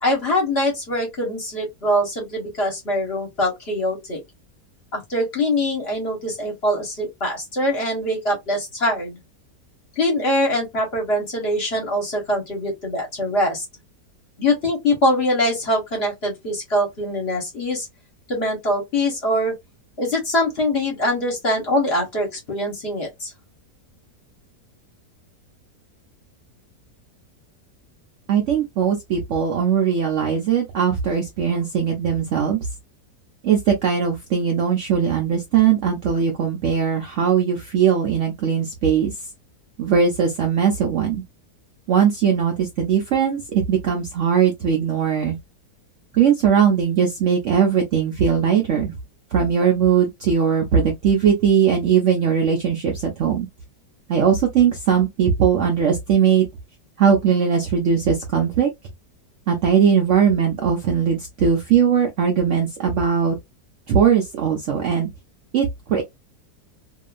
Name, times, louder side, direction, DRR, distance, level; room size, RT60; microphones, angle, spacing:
voice 1, 0.0-4.2 4.9-9.2 10.0-13.6 14.4-17.9 18.3-19.5 20.0-23.3, left 1 dB, 45° left, 1.1 m, -23 dB
voice 2, 28.3-32.7 33.4-39.1 39.8-41.2 41.9-45.4 46.1-48.9 49.3-53.5 54.1-56.5 57.0-58.7 59.5-63.4 63.9-65.1 65.5-66.0, right 7 dB, 65° right, 0.7 m, -19 dB
2.7 x 2.4 x 2.3 m
omnidirectional pair, 1.8 m